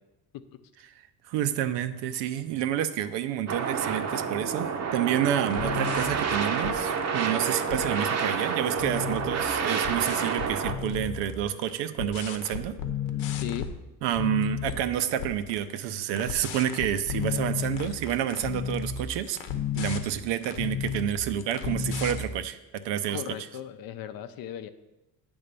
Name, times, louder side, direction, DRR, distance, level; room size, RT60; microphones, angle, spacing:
voice 1, 1.3-12.7 14.0-19.4 19.7-23.4, right 10 dB, 75° right, 11 dB, 0.7 m, -29 dB
sound 1, 3.5-10.7, right 6 dB, 40° right, 0.7 m, -29 dB
sound 2, 5.4-7.2 7.5-8.1 8.4-11.7 12.0-13.8 14.1-14.8 15.1-22.3, left 8 dB, 75° left, 0.9 m, -33 dB
sound 3, 6.0-13.6, right 3 dB, 5° right, 0.5 m, -42 dB
voice 2, 23.1-24.7, left 10 dB, 55° left, 11 dB, 0.6 m, -37 dB
8.7 x 3.6 x 6.7 m, 0.99 s
cardioid pair, 130°, 43 cm